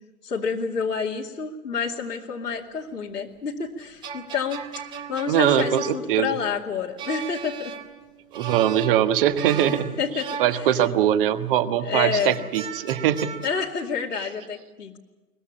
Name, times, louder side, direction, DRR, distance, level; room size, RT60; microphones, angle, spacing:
voice 1, 0.2-4.6 5.1-7.7 9.6-10.7 11.8-12.4 13.4-15.0, left 6 dB, 85° left, -2 dB, 2.6 m, -29 dB
sound 1, 3.8-11.3 12.2-13.7, right 6 dB, 10° right, 0.7 m, -37 dB
voice 2, 5.3-6.3 8.3-9.9 10.4-13.3, right 10 dB, 35° right, 11 dB, 1.4 m, -22 dB
22.5 x 20.5 x 8.6 m, 1.2 s
hypercardioid pair, 135°, 46 cm